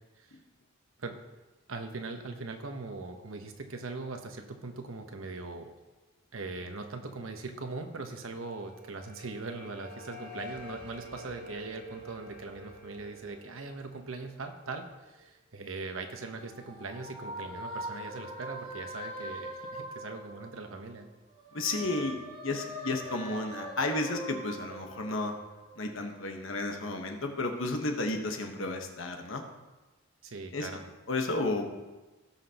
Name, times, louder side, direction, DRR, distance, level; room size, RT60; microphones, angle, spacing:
voice 1, 1.7-5.7 6.3-21.1 30.2-30.9, right 3 dB, 85° right, 5 dB, 1.0 m, -40 dB
sound 1, 8.2-15.3, left 1 dB, 60° right, 3.2 m, -48 dB
sound 2, 15.9-20.9 21.3-26.1, right 1 dB, 40° right, 2.5 m, -42 dB
voice 2, 21.5-25.4 25.7-29.4 30.5-30.7 31.1-31.7, left 2 dB, 75° left, 3 dB, 1.2 m, -32 dB
17.5 x 5.9 x 2.9 m, 1.1 s
head